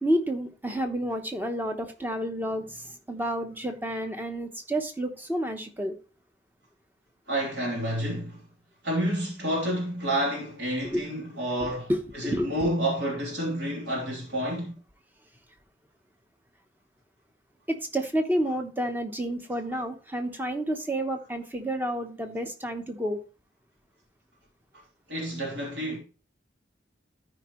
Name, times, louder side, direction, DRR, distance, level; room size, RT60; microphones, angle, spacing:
voice 1, 0.0-5.9 10.8-11.1 11.6-12.7 17.7-23.2, equal, 10° right, 1.0 m, -30 dB
voice 2, 7.3-8.4 8.8-14.8 25.1-26.0, equal, 65° right, 3.4 m, -29 dB
13.0 x 5.2 x 3.1 m
head